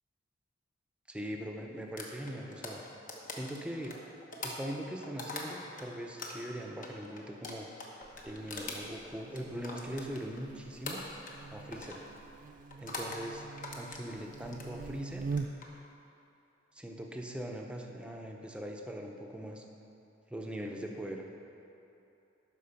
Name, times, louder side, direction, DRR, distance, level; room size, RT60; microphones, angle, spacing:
voice 1, 1.1-2.8 3.3-4.0 4.4-7.7 8.2-11.0 11.5-12.0 12.8-13.4 13.7-15.2 16.7-19.6 20.3-21.2, equal, 5° right, 1 dB, 0.7 m, -41 dB
sound 1, 2.0-5.9 6.2-10.5 10.9-11.4 11.7-12.0 12.7-13.2 13.6-14.7 15.2-15.7, left 2 dB, 45° left, 1.1 m, -42 dB
Buzz, 8.0-15.8, right 4 dB, 40° right, 0.3 m, -44 dB
11.5 x 4.5 x 5.8 m, 2.9 s
head